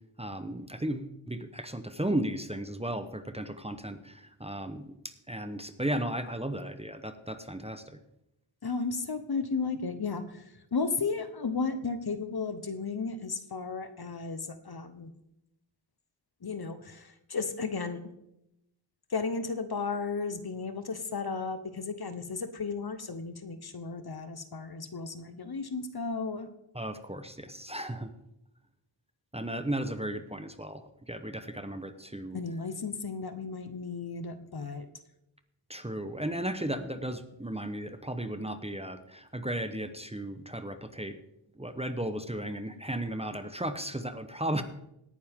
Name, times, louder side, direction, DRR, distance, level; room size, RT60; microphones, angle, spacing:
voice 1, 0.2-8.0 26.7-28.1 29.3-32.4 35.7-41.2 41.6-44.6, right 1 dB, 15° right, 9 dB, 0.9 m, -35 dB
voice 2, 8.6-15.1 16.4-18.0 19.1-26.5 32.3-34.9, left 4 dB, 55° left, 10 dB, 1.1 m, -34 dB
18.0 x 9.6 x 3.7 m, 0.84 s
wide cardioid pair, 75°, 47 cm